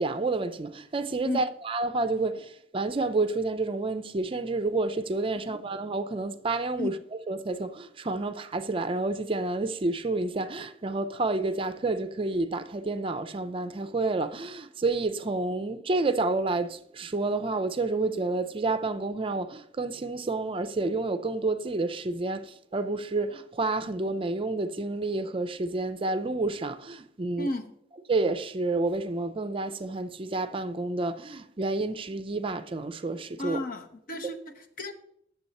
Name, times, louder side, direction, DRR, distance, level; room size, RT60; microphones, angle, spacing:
voice 1, 0.0-7.0 7.3-27.5 28.1-33.6, right 3 dB, 30° right, 0.5 m, -29 dB
voice 2, 27.4-27.7 33.4-34.9, left 2 dB, 55° left, 0.9 m, -34 dB
9.1 x 7.0 x 4.1 m
head